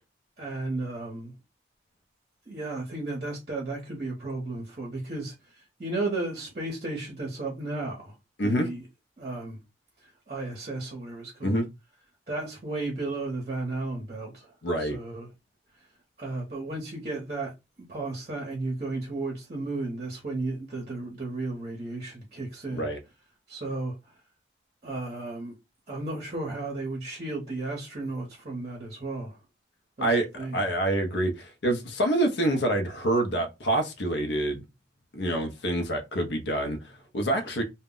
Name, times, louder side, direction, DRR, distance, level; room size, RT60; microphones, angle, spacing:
voice 1, 0.4-1.3 2.5-5.3 5.8-8.1 8.4-8.8 9.2-9.6 10.3-11.6 12.3-14.5 14.8-15.3 16.2-17.5 17.9-22.9 23.5-24.0 24.8-25.5 25.9-29.3 30.0-30.1 30.3-30.6, right 2 dB, 35° right, 0.7 m, -34 dB
voice 2, 8.4-8.7 11.4-11.6 14.6-15.0 22.7-23.0 30.0-34.6 35.1-37.6, right 1 dB, 70° left, 0.6 m, -27 dB
2.1 x 2.0 x 3.7 m
head